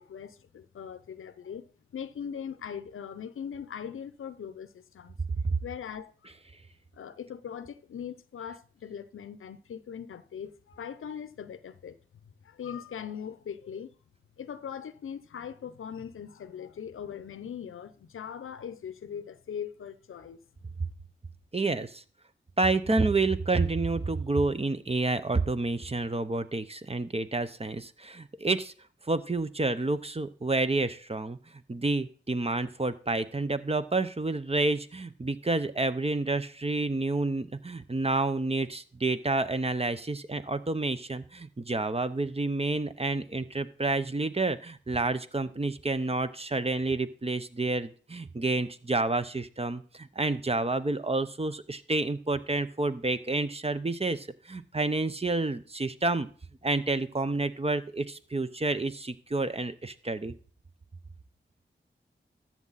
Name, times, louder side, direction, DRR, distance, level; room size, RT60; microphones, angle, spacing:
voice 1, 0.0-1.7 1.9-5.2 5.6-6.1 6.9-12.0 12.4-13.9 14.4-20.4, left 8 dB, 90° left, 0.6 m, -40 dB
voice 2, 21.5-22.0 22.6-28.7 29.1-31.4 31.7-56.3 56.6-60.3, right 3 dB, 30° right, 0.8 m, -29 dB
13.0 x 7.4 x 4.1 m
cardioid pair, 40°, 21 cm